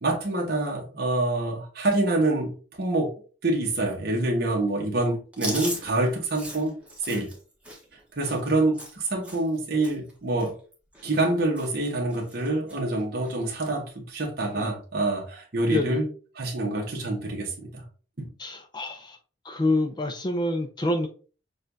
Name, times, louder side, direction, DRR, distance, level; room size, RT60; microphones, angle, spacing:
voice 1, 0.0-3.1 3.4-6.7 7.0-7.3 8.2-10.5 11.0-16.1 16.3-17.8 18.2-18.3, right 2 dB, 55° right, 1.0 m, -26 dB
Chewing mastication, 5.3-9.6 9.8-10.1 10.4-11.3 11.5-11.9 12.1-12.8 13.2-13.4 14.4-14.8, right 1 dB, 5° right, 0.9 m, -38 dB
voice 2, 18.4-19.2 19.4-21.1, left 1 dB, 25° left, 0.4 m, -27 dB
6.4 x 2.3 x 2.6 m
head